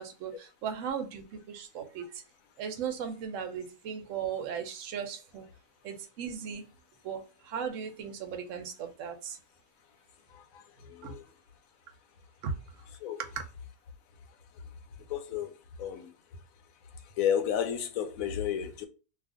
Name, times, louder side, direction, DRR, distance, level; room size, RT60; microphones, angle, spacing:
voice 1, 0.0-2.2 2.6-5.5 5.8-6.6 7.0-9.4 11.0-11.2 12.4-12.5 13.2-13.4, right 7 dB, 65° right, 0.9 m, -37 dB
voice 2, 10.3-11.2 13.0-13.2 15.1-15.5 15.8-16.1 17.2-18.9, left 9 dB, 70° left, 0.9 m, -32 dB
2.7 x 2.4 x 3.5 m
omnidirectional pair, 1.7 m